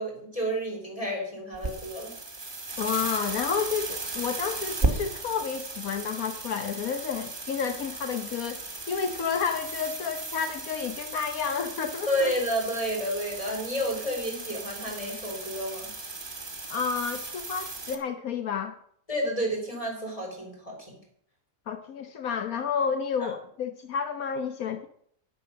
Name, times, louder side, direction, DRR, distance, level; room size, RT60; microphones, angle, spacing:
voice 1, 0.0-2.1 12.1-15.9 19.1-21.0 23.2-23.3, equal, 25° left, 0 dB, 4.6 m, -30 dB
sound 1, 1.5-18.0, right 3 dB, 20° right, 1.6 m, -36 dB
voice 2, 2.8-12.3 16.7-18.8 21.7-24.9, left 6 dB, 80° left, 8 dB, 1.4 m, -30 dB
10.5 x 10.5 x 6.9 m, 0.64 s
omnidirectional pair, 1.5 m